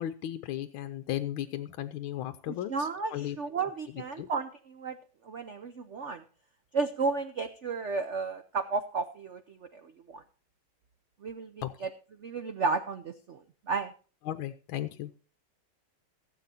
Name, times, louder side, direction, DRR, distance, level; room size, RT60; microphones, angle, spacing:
voice 1, 0.0-2.7 3.1-3.4 4.2-4.3 11.6-11.7 14.3-15.1, left 12 dB, 75° left, 8 dB, 1.5 m, -35 dB
voice 2, 2.5-5.0 5.2-6.2 6.7-10.2 11.2-13.9, right 4 dB, 85° right, 8 dB, 0.6 m, -33 dB
16.5 x 7.7 x 4.1 m, 0.38 s
omnidirectional pair, 2.3 m